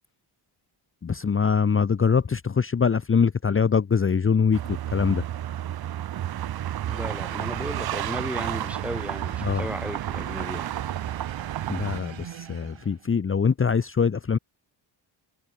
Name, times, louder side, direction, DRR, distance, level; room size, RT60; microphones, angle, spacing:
voice 1, 1.0-5.2 9.4-9.7 11.7-14.4, left 6 dB, 25° left, 1.1 m, -23 dB
sound 1, 4.5-12.0, right 12 dB, 50° right, 0.8 m, -31 dB
voice 2, 6.9-10.7, equal, 5° right, 1.8 m, -35 dB
sound 2, 6.9-13.2, right 10 dB, 70° right, 3.8 m, -42 dB
cardioid pair, 120°, 47 cm